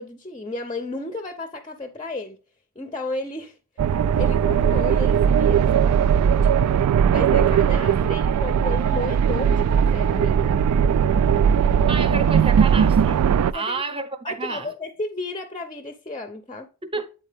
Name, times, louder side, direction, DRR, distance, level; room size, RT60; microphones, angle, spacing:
voice 1, 0.0-2.4 2.8-3.6 4.1-5.9 6.4-6.7 7.1-10.5 13.5-13.7 14.2-16.7, left 2 dB, 20° left, 0.5 m, -33 dB
sound 1, 3.8-13.5, right 8 dB, 85° right, 0.3 m, -19 dB
voice 2, 11.6-14.7 16.8-17.1, right 3 dB, 25° right, 0.7 m, -31 dB
8.3 x 4.2 x 3.4 m
head